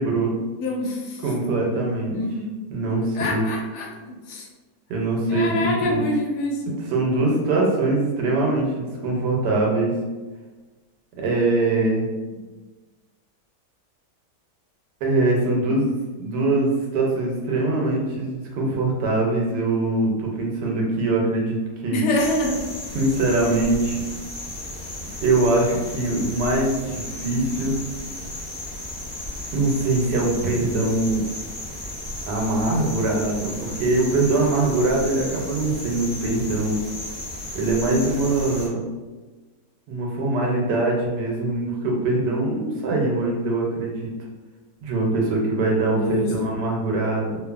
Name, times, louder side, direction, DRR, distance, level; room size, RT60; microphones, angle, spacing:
voice 1, 0.0-0.3 1.2-2.2 2.7-3.5 4.9-6.0 6.9-9.9 11.2-12.1 15.0-22.0 22.9-24.0 25.2-27.7 29.5-31.2 32.3-36.8 37.5-38.8 39.9-44.1 44.8-47.4, right 2 dB, 80° right, -1 dB, 1.2 m, -22 dB
voice 2, 0.5-1.2 2.1-2.5 3.1-4.5 5.3-6.7 21.9-22.7 45.9-46.3, left 1 dB, 80° left, -1 dB, 1.2 m, -26 dB
sound 1, 22.2-38.7, left 1 dB, 35° left, 0.7 m, -34 dB
2.7 x 2.5 x 2.3 m, 1.3 s
omnidirectional pair, 1.8 m